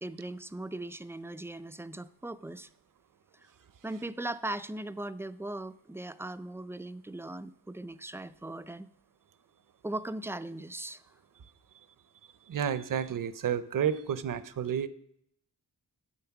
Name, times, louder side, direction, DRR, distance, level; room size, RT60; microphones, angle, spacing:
voice 1, 0.0-2.7 3.8-8.9 9.8-11.0, right 1 dB, 5° right, 13 dB, 0.3 m, -39 dB
voice 2, 12.5-14.9, right 8 dB, 50° right, 15 dB, 0.7 m, -30 dB
11.0 x 7.7 x 5.9 m, 0.70 s
wide cardioid pair, 135°, 40 cm